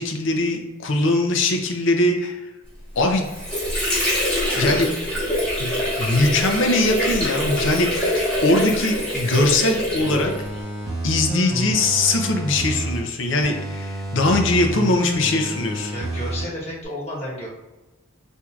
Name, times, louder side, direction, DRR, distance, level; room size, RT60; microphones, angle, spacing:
voice 1, 0.0-2.5 3.0-3.3 4.6-4.9 5.6-5.7 6.0-10.3 11.0-15.9, left 2 dB, 65° left, 4 dB, 0.5 m, -21 dB
Water / Sink (filling or washing), 2.9-10.6, equal, 5° left, 1.3 m, -24 dB
sound 1, 10.0-13.0 13.4-16.4 16.8-16.9, right 1 dB, 15° right, 1.4 m, -29 dB
voice 2, 15.9-17.5, equal, 30° left, -6 dB, 1.2 m, -32 dB
4.4 x 2.7 x 2.4 m, 1.1 s
head